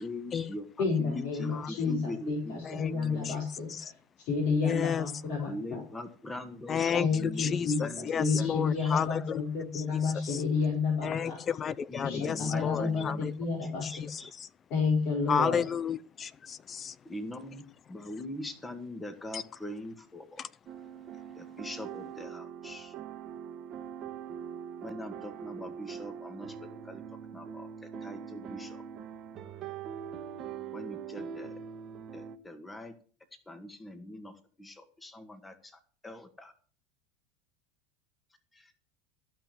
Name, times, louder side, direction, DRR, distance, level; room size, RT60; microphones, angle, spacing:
voice 1, 0.0-3.4 5.5-8.6 8.8-8.9 11.9-13.2 13.7-14.3 17.1-17.6 17.9-20.4 21.4-22.9 24.8-26.5 26.9-27.0 27.3-27.7 28.0-28.8 30.7-31.5 32.1-32.9 33.5-34.3 34.6-35.7 36.0-36.5, left 1 dB, 15° left, 1.9 m, -42 dB
voice 2, 0.8-3.9 4.2-5.8 6.9-11.4 12.0-14.1 14.7-15.7, left 5 dB, 60° left, 4.6 m, -30 dB
voice 3, 4.6-5.1 6.7-7.1 7.4-9.4 9.7-10.4 11.0-13.3 13.8-14.5 15.3-17.0 19.3-19.4 20.4-20.5, left 7 dB, 35° left, 0.5 m, -32 dB
sound 1, 20.7-32.4, right 8 dB, 45° right, 1.4 m, -42 dB
15.0 x 5.9 x 7.8 m
hypercardioid pair, 95°, 0 cm